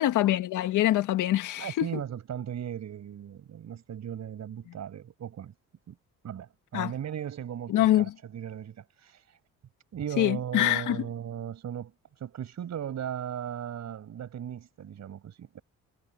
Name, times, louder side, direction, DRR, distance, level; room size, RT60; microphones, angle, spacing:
voice 1, 0.0-1.9 6.7-6.9 7.7-8.1 10.2-11.0, left 14 dB, 85° left, 1.9 m, -24 dB
voice 2, 1.6-5.5 5.9-6.0 6.2-9.4 9.9-15.6, right 9 dB, 65° right, 7.2 m, -37 dB
cardioid pair, 90°, 30 cm